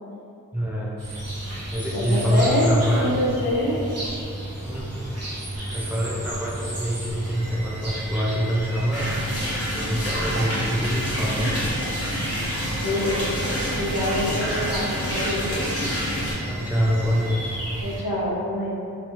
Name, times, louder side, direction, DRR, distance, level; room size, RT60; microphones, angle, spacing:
voice 1, 0.5-1.0 1.7-3.1 4.6-5.1 5.7-9.1 9.7-11.7 14.3-14.5 16.4-17.6, equal, 5° right, -4 dB, 0.4 m, -25 dB
sound 1, 1.0-18.0, right 1 dB, 50° right, 1.2 m, -33 dB
voice 2, 1.9-3.8 12.8-13.4 13.8-15.7 17.8-18.8, left 1 dB, 75° left, -7 dB, 0.9 m, -25 dB
sound 2, 7.1-17.6, right 1 dB, 70° right, 1.4 m, -39 dB
sound 3, 8.9-16.3, equal, 45° left, 1.0 m, -28 dB
3.0 x 2.7 x 2.9 m, 2.5 s
wide cardioid pair, 85°, 33 cm